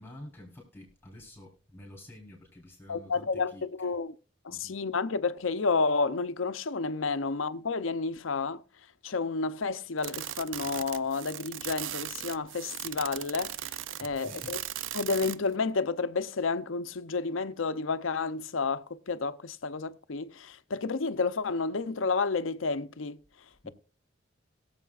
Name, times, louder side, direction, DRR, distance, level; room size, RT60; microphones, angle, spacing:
voice 1, 0.0-4.0 4.5-4.8 14.0-14.6 23.6-23.7, left 1 dB, 10° left, 3.8 m, -49 dB
voice 2, 2.9-4.1 4.4-8.6 9.0-13.7 14.0-14.6 14.9-23.2, left 4 dB, 85° left, 0.7 m, -30 dB
sound 1, 10.0-15.5, right 13 dB, 75° right, 0.5 m, -38 dB
22.0 x 7.4 x 2.4 m
head